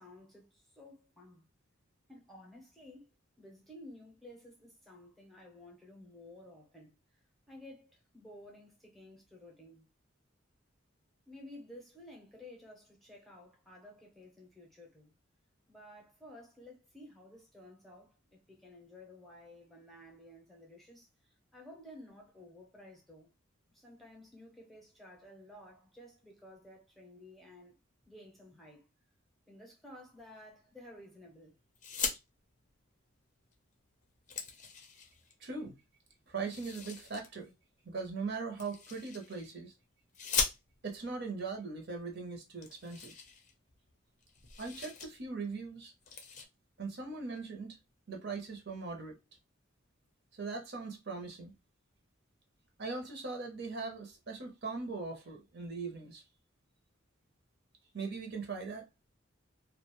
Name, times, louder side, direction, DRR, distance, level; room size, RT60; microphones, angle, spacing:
voice 1, 0.0-1.5 2.1-3.1 3.4-7.0 7.5-9.9 11.3-15.1 15.7-21.1 21.5-23.3 23.7-27.8 28.0-28.9 29.5-31.6, left 1 dB, ahead, 0.7 m, -54 dB
sound 1, 31.8-32.2 33.5-33.6 33.9-35.3 36.4-37.3 38.6-39.5 40.1-41.0 41.9-42.0 42.2-42.3 42.6-43.9 44.2-45.1 45.4-45.6 46.0-46.5, left 5 dB, 35° left, 0.5 m, -39 dB
voice 2, 35.4-35.8 36.3-37.5 37.8-39.7 40.8-43.1 44.6-45.9 46.8-47.8 48.1-49.2 50.3-51.5 52.8-56.2 57.9-58.9, right 4 dB, 55° right, 0.7 m, -40 dB
2.4 x 2.2 x 3.0 m
head